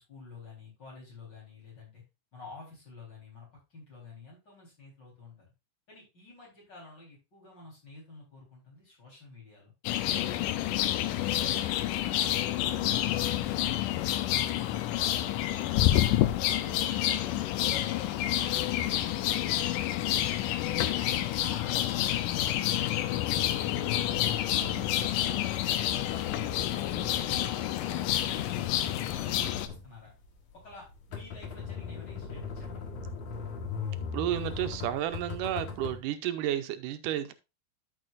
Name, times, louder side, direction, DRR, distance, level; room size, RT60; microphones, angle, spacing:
voice 1, 0.0-2.0 2.3-5.5 5.9-9.7 10.1-11.9 12.2-16.1 16.4-20.7 21.0-21.7 22.1-23.2 23.5-25.5 25.9-30.1 30.5-32.9, left 2 dB, 35° left, 4.4 m, -50 dB
sound 1, 9.9-29.7, left 13 dB, 90° left, 2.3 m, -28 dB
sound 2, 23.6-36.0, left 5 dB, 60° left, 2.5 m, -40 dB
voice 2, 34.1-37.3, right 12 dB, 85° right, 2.3 m, -31 dB
12.5 x 6.4 x 2.5 m
omnidirectional pair, 3.7 m